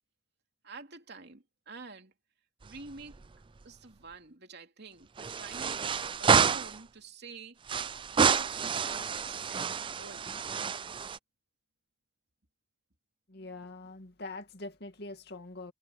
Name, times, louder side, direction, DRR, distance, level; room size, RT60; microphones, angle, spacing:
voice 1, 0.6-2.1 2.6-3.2 3.6-7.8 8.1-9.7 10.0-10.4, right 3 dB, 60° right, 3.0 m, -48 dB
sound 1, 2.6-3.3 3.6-3.7 5.2-6.8 7.7-11.2, right 6 dB, 25° right, 0.4 m, -29 dB
voice 2, 13.3-15.7, left 2 dB, 60° left, 2.3 m, -43 dB
head